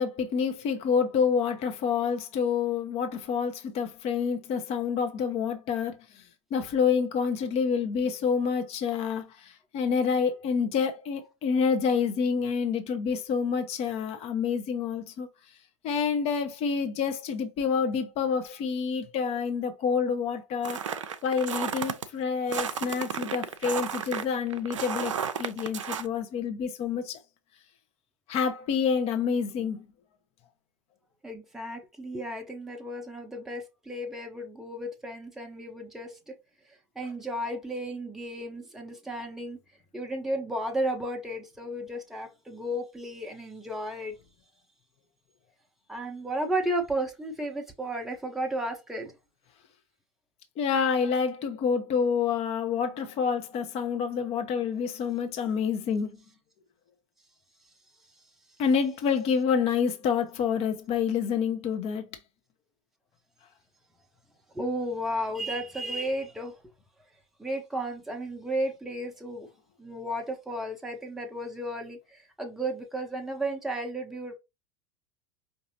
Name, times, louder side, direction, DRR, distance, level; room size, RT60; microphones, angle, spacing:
voice 1, 0.0-6.0 6.5-15.3 15.8-20.8 21.2-25.1 25.4-27.2 28.3-29.8 50.6-56.1 58.6-62.1, left 6 dB, 40° left, 0.9 m, -28 dB
sound 1, 20.6-22.0 22.5-26.1, right 7 dB, 75° right, 0.5 m, -33 dB
voice 2, 31.2-36.4 37.0-39.6 39.9-44.2 45.9-49.1 64.5-66.6 67.4-69.5 69.8-74.3, right 1 dB, ahead, 0.8 m, -33 dB
4.9 x 2.7 x 2.7 m
figure-of-eight pair, 80°, 16 cm